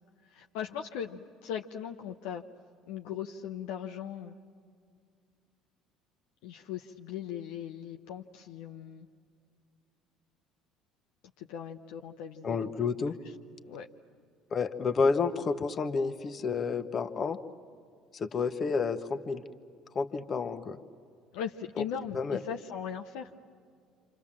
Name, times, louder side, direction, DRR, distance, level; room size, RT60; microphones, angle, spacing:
voice 1, 0.2-2.5 2.9-4.4 6.4-9.1 11.4-12.7 13.7-13.9 21.3-23.3, left 8 dB, 70° left, 3 dB, 0.9 m, -39 dB
voice 2, 12.4-13.1 14.5-17.4 18.1-19.4 19.9-20.8 21.8-21.9 22.1-22.4, left 5 dB, 40° left, 8 dB, 1.4 m, -30 dB
28.0 x 27.0 x 7.5 m, 2.2 s
hypercardioid pair, 60°, 0 cm